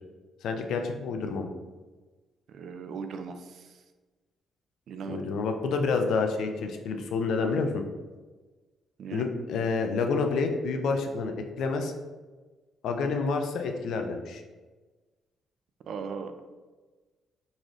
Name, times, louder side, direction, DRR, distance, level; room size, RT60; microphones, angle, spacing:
voice 1, 0.4-1.5 5.1-7.8 9.1-11.9 12.8-14.4, left 4 dB, 75° left, 5 dB, 0.4 m, -28 dB
voice 2, 2.5-3.6 4.9-5.2 9.0-9.2 15.9-16.3, right 5 dB, 65° right, 8 dB, 0.3 m, -37 dB
3.9 x 3.0 x 2.5 m, 1.3 s
cardioid pair, 90°, 0 cm